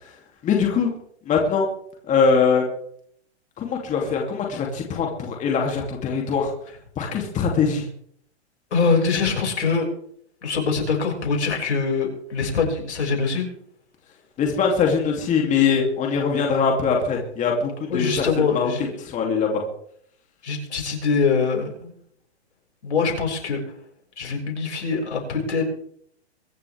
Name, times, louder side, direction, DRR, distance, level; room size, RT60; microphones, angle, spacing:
voice 1, 0.4-0.9 1.3-1.7 2.0-2.7 3.6-6.5 7.0-7.9 14.4-18.2 18.5-18.7 19.0-19.6, left 5 dB, 20° left, 0 dB, 2.9 m, -22 dB
voice 2, 8.7-9.9 10.4-13.5 17.9-18.9 20.4-21.9 22.8-23.6 24.2-25.6, left 5 dB, 80° left, 1 dB, 6.2 m, -23 dB
23.5 x 11.0 x 3.6 m, 0.66 s
hypercardioid pair, 135°, 33 cm